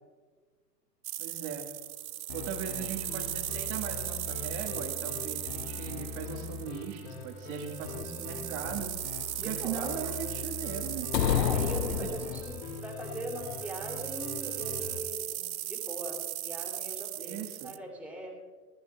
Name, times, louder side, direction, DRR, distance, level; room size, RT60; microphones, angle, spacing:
sound 1, 1.0-17.8, right 14 dB, 55° right, 0.7 m, -38 dB
voice 1, 1.2-1.7 2.3-11.1 11.9-12.1 17.2-17.8, right 7 dB, 30° right, 3 dB, 1.7 m, -39 dB
sound 2, 2.3-15.0, left 5 dB, 40° left, 1.9 m, -42 dB
voice 2, 9.3-10.2 11.2-17.4 17.6-18.4, right 1 dB, 5° right, -1 dB, 3.1 m, -41 dB
sound 3, 11.1-12.7, left 9 dB, 75° left, 0.9 m, -28 dB
20.5 x 12.0 x 3.4 m, 1.4 s
hypercardioid pair, 125°, 50 cm